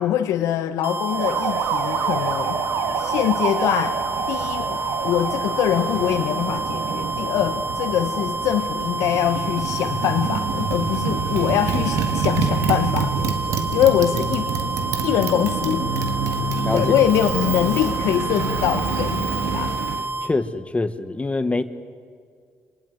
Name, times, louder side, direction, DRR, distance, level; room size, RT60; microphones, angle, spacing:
voice 1, 0.0-2.6 3.0-4.0 4.3-13.4 13.7-14.5 15.0-15.9 16.7-19.8, left 11 dB, 90° left, 8 dB, 1.0 m, -23 dB
sound 1, 0.8-20.3, right 2 dB, 40° right, 1.6 m, -29 dB
Motorcycle, 1.1-20.1, right 6 dB, 85° right, 1.7 m, -27 dB
voice 2, 20.2-21.6, left 3 dB, 25° left, 10 dB, 1.5 m, -24 dB
27.0 x 19.5 x 9.3 m, 2.1 s
supercardioid pair, 70°, 5 cm